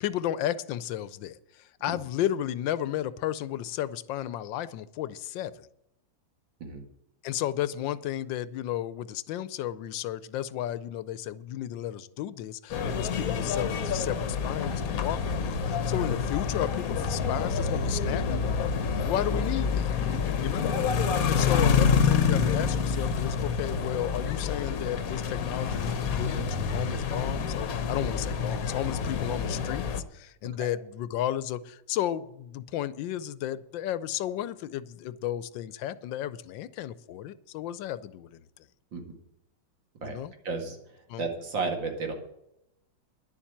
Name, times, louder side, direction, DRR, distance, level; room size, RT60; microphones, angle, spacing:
voice 1, 0.0-5.7 7.2-18.4 19.0-19.9 20.4-20.7 21.0-38.4 40.0-40.3 41.1-41.2, left 12 dB, 85° left, 16 dB, 1.3 m, -33 dB
sound 1, 12.7-30.0, left 6 dB, 55° left, 1.3 m, -27 dB
voice 2, 40.4-40.8 41.2-42.1, right 4 dB, 80° right, 3 dB, 2.8 m, -32 dB
11.0 x 7.3 x 8.7 m, 0.83 s
omnidirectional pair, 2.0 m